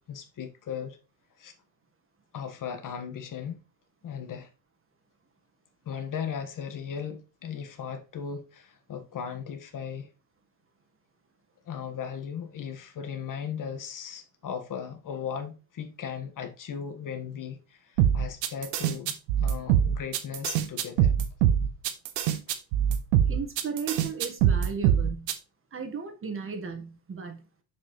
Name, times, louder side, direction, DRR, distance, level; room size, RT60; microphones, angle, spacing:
voice 1, 0.1-1.0 1.4-1.5 2.3-3.6 4.0-4.5 5.8-10.1 11.7-21.1, left 7 dB, 40° left, 1.6 m, -37 dB
sound 1, 18.0-25.3, right 9 dB, 80° right, 1.0 m, -23 dB
voice 2, 23.3-25.3 25.7-27.5, right 5 dB, 25° right, 1.5 m, -35 dB
6.8 x 5.2 x 3.1 m
supercardioid pair, 90°, 48 cm